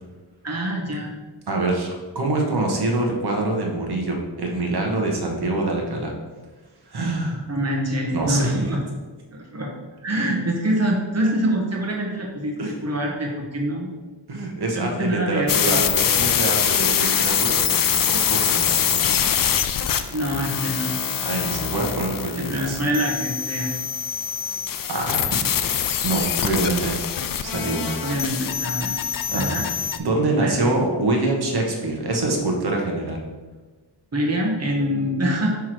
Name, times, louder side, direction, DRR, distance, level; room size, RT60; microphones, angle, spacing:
voice 1, 0.4-1.1 7.5-8.8 9.3-9.7 10.0-12.5 12.8-13.9 14.7-15.8 20.1-21.0 22.4-23.7 28.0-29.0 29.3-29.6 30.4-30.8 34.1-35.5, equal, 35° right, -1 dB, 1.4 m, -25 dB
voice 2, 1.5-6.1 6.8-7.4 8.1-8.8 12.6-12.7 14.3-19.3 21.2-22.8 24.9-25.4 26.0-27.0 27.4-28.0 29.3-29.6 30.0-33.2, right 2 dB, 55° right, 1 dB, 1.3 m, -25 dB
sound 1, 15.5-30.0, left 8 dB, 50° left, 0.4 m, -24 dB
6.0 x 3.6 x 4.6 m, 1.3 s
wide cardioid pair, 105°, 45 cm